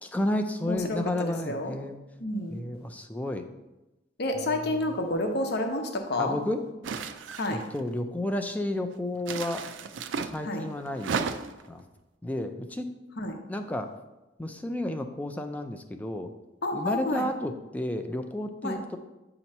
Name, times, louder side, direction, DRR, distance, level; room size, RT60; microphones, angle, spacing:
voice 1, 0.0-2.0 2.5-3.5 4.3-4.8 6.2-6.6 7.5-9.6 10.2-11.1 11.7-11.8 12.2-12.9 13.5-13.9 14.4-16.3 16.7-19.0, left 1 dB, 10° left, 6 dB, 0.4 m, -32 dB
voice 2, 0.7-1.7 2.2-2.6 4.2-6.4 7.4-7.6 10.4-10.7 13.2-13.4 16.6-17.3 18.6-18.8, left 1 dB, 60° left, 4 dB, 0.8 m, -30 dB
sound 1, 6.8-7.8 9.2-10.4 10.9-11.7, right 5 dB, 75° right, 0.4 m, -33 dB
8.2 x 2.9 x 5.4 m, 1.0 s
head